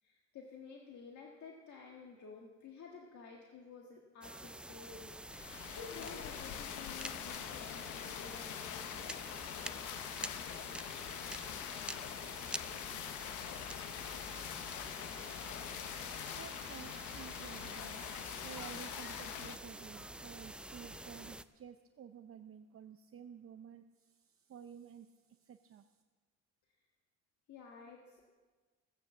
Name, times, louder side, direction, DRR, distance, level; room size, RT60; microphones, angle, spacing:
voice 1, 0.0-9.4 27.5-28.2, left 5 dB, 70° left, 0 dB, 1.7 m, -52 dB
sound 1, 4.2-21.4, right 1 dB, 5° right, 0.4 m, -47 dB
sound 2, 5.3-19.6, left 11 dB, 85° left, 0.8 m, -44 dB
voice 2, 16.3-18.0 18.4-26.0, right 8 dB, 45° right, 8 dB, 0.7 m, -53 dB
16.0 x 8.9 x 7.3 m, 1.4 s
cardioid pair, 90°, 30 cm